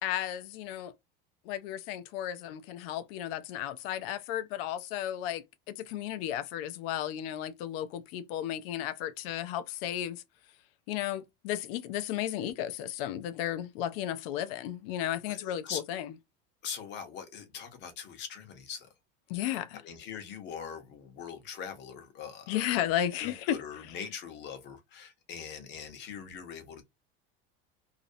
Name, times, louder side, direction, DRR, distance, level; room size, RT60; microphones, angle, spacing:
voice 1, 0.0-0.9 1.4-10.2 10.9-16.1 19.3-19.8 22.5-24.0, left 11 dB, 80° left, 0.5 m, -34 dB
voice 2, 15.3-15.8 16.6-18.9 19.8-22.7 23.2-26.8, left 7 dB, 40° left, 0.7 m, -42 dB
2.4 x 2.0 x 2.5 m
cardioid pair, 155°, 29 cm